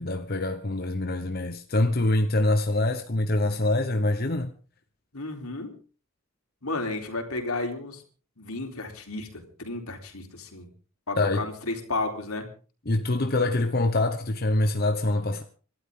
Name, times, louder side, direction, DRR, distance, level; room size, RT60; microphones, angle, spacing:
voice 1, 0.0-4.5 11.2-11.5 12.9-15.4, left 2 dB, 45° left, 1.0 m, -25 dB
voice 2, 5.1-5.8 6.6-8.0 8.4-10.7 11.1-12.5, left 2 dB, 80° left, 3.9 m, -33 dB
26.5 x 12.5 x 3.8 m
head